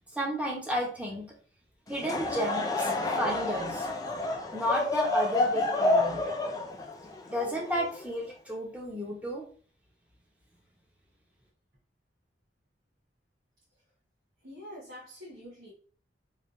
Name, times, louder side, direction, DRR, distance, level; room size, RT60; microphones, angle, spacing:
voice 1, 0.1-1.3 1.9-3.9 4.5-6.2 7.3-9.4, equal, 10° right, -1 dB, 0.8 m, -32 dB
Laughter / Crowd, 1.9-8.3, left 2 dB, 20° left, 0.3 m, -29 dB
voice 2, 14.4-15.7, equal, 75° right, -7 dB, 1.3 m, -45 dB
3.3 x 2.8 x 2.6 m, 0.43 s
head